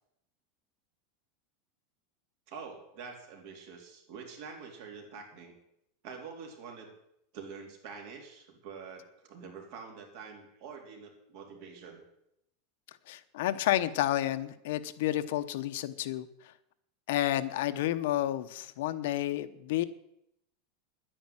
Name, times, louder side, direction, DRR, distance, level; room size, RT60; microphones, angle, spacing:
voice 1, 2.5-5.6 6.0-6.9 7.3-12.0, right 5 dB, 45° right, 2 dB, 3.6 m, -46 dB
voice 2, 13.1-16.3 17.1-19.8, left 13 dB, 60° left, 11 dB, 0.9 m, -30 dB
10.5 x 10.0 x 8.9 m, 0.78 s
supercardioid pair, 180°, 0 cm